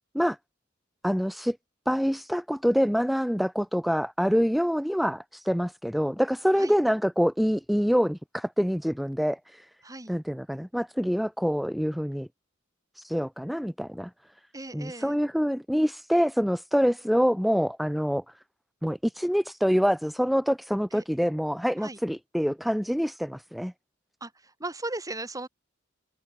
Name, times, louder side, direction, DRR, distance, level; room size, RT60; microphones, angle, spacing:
voice 1, 1.0-1.6 1.9-9.7 10.1-12.3 13.0-14.1 14.7-18.2 18.8-23.7, equal, ahead, 0.4 m, -26 dB
voice 2, 14.5-15.2 20.9-21.0 21.8-22.0 24.2-24.3 24.6-25.5, right 2 dB, 20° right, 2.4 m, -36 dB
head